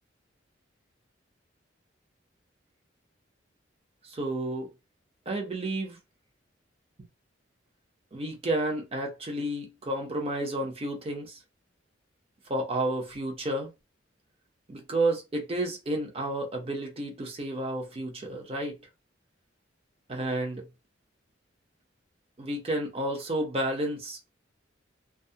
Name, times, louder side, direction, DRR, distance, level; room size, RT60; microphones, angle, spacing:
voice 1, 4.0-4.7 5.3-6.0 8.1-11.4 12.5-13.7 14.7-18.8 20.1-20.7 22.4-24.3, right 1 dB, 30° right, 0.6 m, -31 dB
2.3 x 2.1 x 2.6 m
head